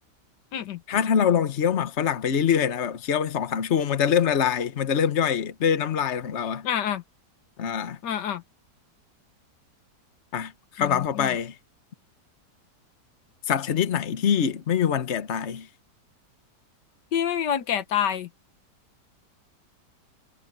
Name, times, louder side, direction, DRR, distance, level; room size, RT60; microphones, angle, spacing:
voice 1, 0.9-6.7 7.6-8.0 10.3-11.5 13.5-15.7, left 8 dB, 45° left, 1.3 m, -24 dB
voice 2, 6.6-7.0 8.0-8.4 10.8-11.3 17.1-18.3, left 9 dB, 75° left, 1.5 m, -27 dB
omnidirectional pair, 1.8 m